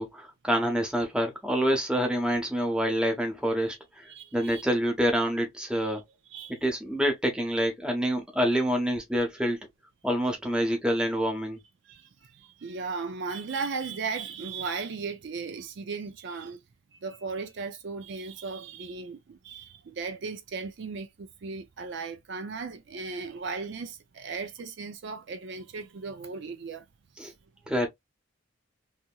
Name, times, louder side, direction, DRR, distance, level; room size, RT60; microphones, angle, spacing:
voice 1, 0.0-3.8 4.3-6.0 6.6-9.6 10.0-11.6 27.2-27.3 27.7-27.9, equal, 5° right, 0.8 m, -27 dB
voice 2, 4.1-4.6 5.9-6.0 6.3-6.6 11.8-16.6 16.9-26.9 27.2-27.3, right 4 dB, 55° right, 0.4 m, -36 dB
2.8 x 2.7 x 2.2 m
head